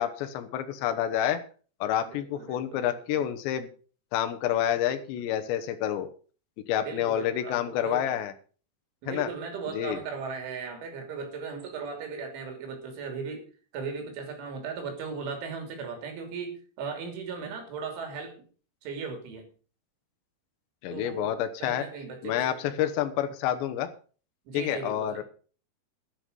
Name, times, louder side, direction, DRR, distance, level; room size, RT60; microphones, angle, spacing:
voice 1, 0.0-1.4 1.8-3.7 4.1-6.1 6.7-8.3 9.1-9.3 9.7-10.0 20.8-21.9 22.2-23.9 24.5-25.2, left 11 dB, 75° left, 8 dB, 3.3 m, -28 dB
voice 2, 2.1-3.2 5.1-5.3 6.8-8.1 9.0-13.5 13.7-18.4 18.8-19.5 20.9-21.3 21.6-22.8 24.5-25.2, right 5 dB, 85° right, 4 dB, 5.5 m, -37 dB
11.0 x 11.0 x 5.4 m, 0.39 s
omnidirectional pair, 5.3 m